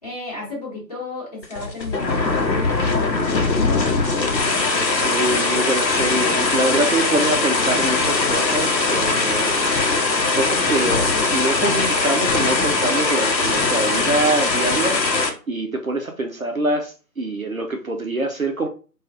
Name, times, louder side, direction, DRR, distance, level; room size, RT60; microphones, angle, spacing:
voice 1, 0.0-3.9, left 2 dB, 25° left, -9 dB, 1.2 m, -34 dB
sound 1, 1.4-15.3, left 3 dB, 90° left, 0.8 m, -20 dB
voice 2, 5.0-10.1 10.3-15.2 15.5-18.7, right 2 dB, 55° right, 3 dB, 0.5 m, -24 dB
3.0 x 2.3 x 2.4 m, 0.36 s
figure-of-eight pair, 165°, 50 cm